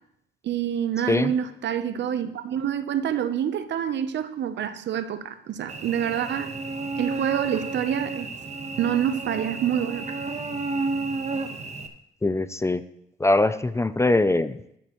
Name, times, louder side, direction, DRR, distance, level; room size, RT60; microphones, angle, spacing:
voice 1, 0.4-6.5 7.0-8.3 8.8-10.1, right 9 dB, 65° right, 0.9 m, -27 dB
Cricket / Buzz, 5.7-11.9, right 3 dB, 35° right, 1.2 m, -32 dB
voice 2, 12.2-12.8 13.2-14.6, left 2 dB, 15° left, 0.5 m, -22 dB
14.0 x 9.8 x 3.1 m
cardioid pair, 90°, 20 cm